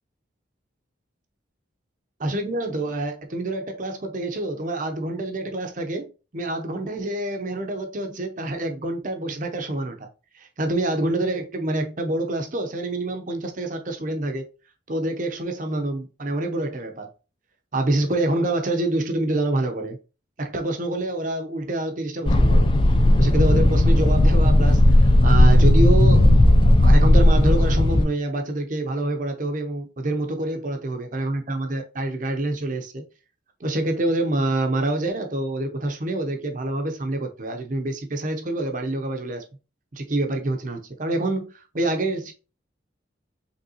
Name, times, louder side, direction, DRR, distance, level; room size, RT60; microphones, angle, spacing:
voice 1, 2.2-10.1 10.3-14.4 14.9-17.1 17.7-20.0 20.4-22.8 23.2-26.4 26.8-33.0 33.6-39.4 39.9-42.3, right 2 dB, 40° right, 0.7 m, -26 dB
sound 1, 22.3-28.1, left 1 dB, 25° left, 0.4 m, -15 dB
5.3 x 3.3 x 2.8 m
head